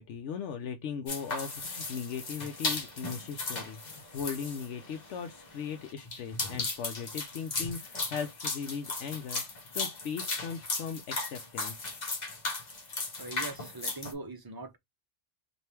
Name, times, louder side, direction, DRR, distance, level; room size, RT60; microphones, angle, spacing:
voice 1, 0.0-9.4 9.7-11.9, left 6 dB, 85° left, 0.9 m, -38 dB
sound 1, 1.1-14.1, left 3 dB, 40° left, 1.1 m, -36 dB
voice 2, 12.9-14.8, right 3 dB, 35° right, 0.4 m, -42 dB
3.3 x 2.6 x 4.3 m
omnidirectional pair, 1.2 m